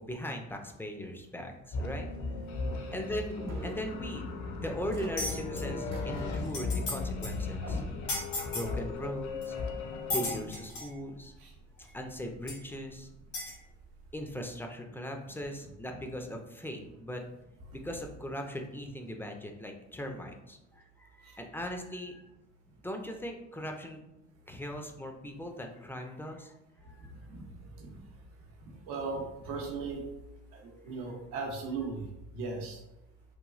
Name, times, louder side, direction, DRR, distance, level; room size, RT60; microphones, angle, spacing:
voice 1, 0.0-2.1 2.9-7.8 8.5-9.6 10.1-11.3 11.9-13.1 14.1-17.2 17.7-22.2 22.8-24.0 24.5-26.5 26.8-27.1, equal, 5° left, 3 dB, 0.4 m, -39 dB
sound 1, 1.7-10.4, left 3 dB, 55° left, 0.6 m, -36 dB
voice 2, 2.6-3.0 11.4-11.5 27.0-28.0 28.9-30.0 30.5-32.1 32.3-32.8, right 4 dB, 75° right, 1 dB, 0.7 m, -38 dB
sound 2, 3.3-3.8 4.9-5.1 5.9-6.2 6.6-6.7 7.5-8.1, right 1 dB, 50° right, 0.9 m, -42 dB
sound 3, 5.2-5.6 6.2-6.3 6.4-7.0 7.2-7.4 8.1-8.7 9.4-9.5 10.1-10.9 11.8-11.9 12.5-12.6 13.3-13.5, left 2 dB, 80° left, 1.4 m, -34 dB
3.1 x 2.3 x 2.4 m, 0.92 s
hypercardioid pair, 55°, 34 cm